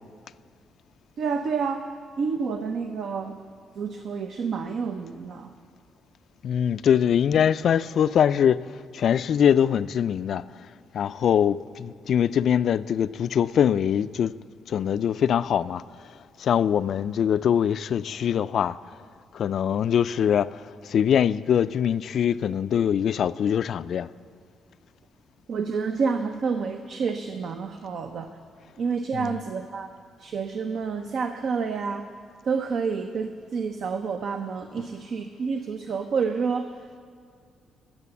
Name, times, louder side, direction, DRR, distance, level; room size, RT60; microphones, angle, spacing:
voice 1, 1.2-1.8 2.2-3.4 3.8-5.5 25.5-28.3 28.8-29.9 30.2-32.1 32.4-36.7, right 5 dB, 65° right, 0.7 m, -29 dB
voice 2, 6.4-8.6 8.9-10.4 10.9-14.3 14.7-15.8 16.4-19.0 19.3-24.1 29.1-29.4, left 8 dB, 60° left, 0.3 m, -23 dB
16.5 x 6.9 x 7.1 m
cardioid pair, 90°, 0 cm